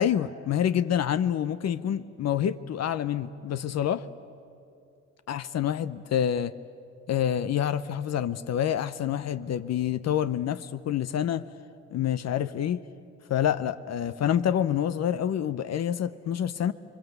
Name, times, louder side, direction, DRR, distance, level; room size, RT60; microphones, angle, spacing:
voice 1, 0.0-4.1 5.3-6.5 7.1-11.5 11.9-12.8 13.3-16.7, left 9 dB, 60° left, 13 dB, 0.8 m, -27 dB
27.0 x 22.5 x 8.1 m, 2.6 s
cardioid pair, 90°, 30 cm